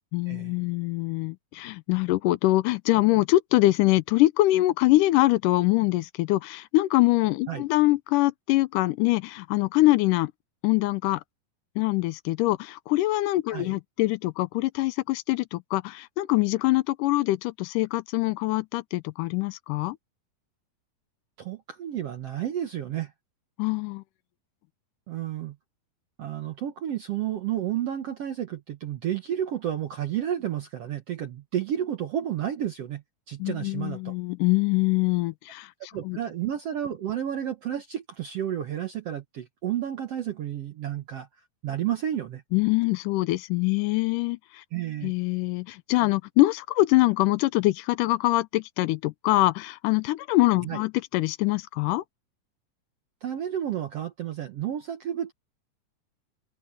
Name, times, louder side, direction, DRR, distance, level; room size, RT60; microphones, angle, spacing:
voice 1, 0.1-10.3 10.6-11.2 11.8-20.0 23.6-24.0 33.4-35.7 36.0-36.2 42.5-44.6 45.0-52.0, left 18 dB, 85° left, 2.2 m, -24 dB
voice 2, 21.4-23.1 25.1-25.6 26.2-34.1 35.9-41.3 41.6-42.4 44.7-45.1 50.6-50.8 53.2-55.3, right 10 dB, 60° right, 1.8 m, -31 dB
open air
omnidirectional pair, 3.8 m